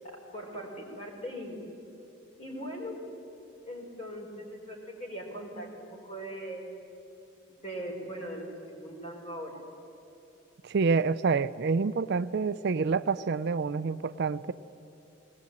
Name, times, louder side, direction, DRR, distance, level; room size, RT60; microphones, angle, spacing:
voice 1, 0.3-1.6 2.4-3.0 3.7-6.7 7.5-9.6, equal, 35° left, 0 dB, 4.5 m, -40 dB
voice 2, 10.6-14.5, right 4 dB, 60° right, 15 dB, 0.4 m, -27 dB
20.5 x 19.5 x 8.7 m, 2.8 s
head